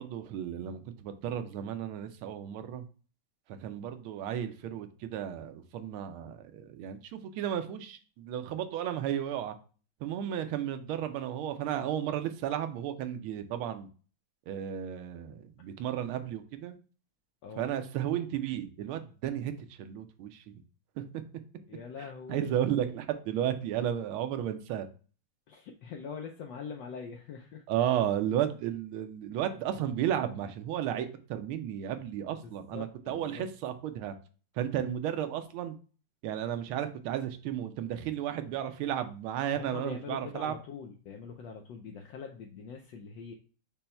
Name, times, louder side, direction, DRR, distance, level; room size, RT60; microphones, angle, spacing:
voice 1, 0.0-2.9 3.5-9.6 10.0-13.9 14.5-16.8 17.6-19.5 19.8-20.5 21.0-21.1 22.3-24.9 27.7-34.1 34.6-35.8 36.2-40.5, right 10 dB, 85° right, 8 dB, 1.5 m, -33 dB
voice 2, 21.7-22.5 25.5-27.6 32.3-33.5 39.5-43.3, left 6 dB, 75° left, 2 dB, 1.1 m, -43 dB
5.4 x 2.3 x 4.1 m, 0.39 s
omnidirectional pair, 2.3 m